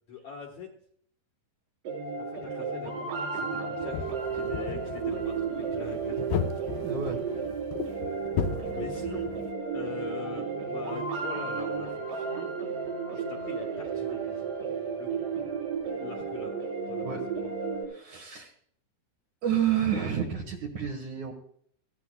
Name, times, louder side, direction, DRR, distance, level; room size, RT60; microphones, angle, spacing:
voice 1, 0.1-0.7 2.2-6.5 8.7-9.3 9.7-12.6 13.1-14.6 15.0-15.1 16.0-16.6 16.9-17.0 17.4-17.5, left 6 dB, 60° left, 1 dB, 2.1 m, -43 dB
sound 1, 1.8-17.8, right 5 dB, 75° right, 6.0 m, -33 dB
sound 2, 3.9-9.5, left 8 dB, 75° left, 2.5 m, -35 dB
voice 2, 6.8-7.2 17.0-17.2 17.9-18.5 19.4-21.3, right 9 dB, 60° right, 1 dB, 2.3 m, -30 dB
20.5 x 15.5 x 2.3 m, 0.62 s
omnidirectional pair, 4.8 m